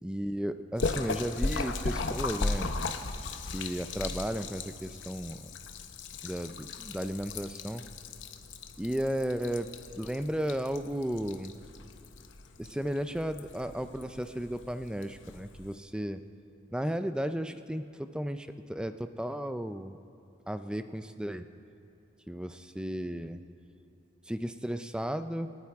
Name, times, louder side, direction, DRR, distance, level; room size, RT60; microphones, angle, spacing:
voice 1, 0.0-2.9 3.5-5.5 6.2-7.8 8.8-11.6 12.6-16.2 16.7-20.0 20.5-21.5 22.3-23.4 24.3-25.5, equal, 5° right, 10 dB, 0.4 m, -34 dB
Splash splatter, 0.8-15.8, left 3 dB, 80° left, 0.8 m, -37 dB
27.5 x 9.2 x 3.6 m, 2.8 s
head